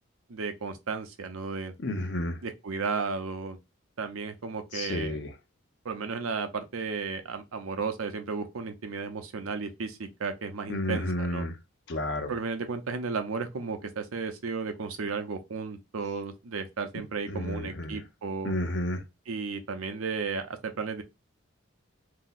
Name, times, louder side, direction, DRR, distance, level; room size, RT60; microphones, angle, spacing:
voice 1, 0.3-1.7 2.4-3.6 4.0-5.2 5.8-11.4 12.3-18.5 19.3-21.0, right 4 dB, 85° right, 0.6 m, -34 dB
voice 2, 1.8-2.4 4.7-5.3 10.7-11.6 11.9-12.4 17.3-18.0 18.4-19.0, left 1 dB, 55° left, 0.6 m, -31 dB
2.7 x 2.0 x 3.8 m
head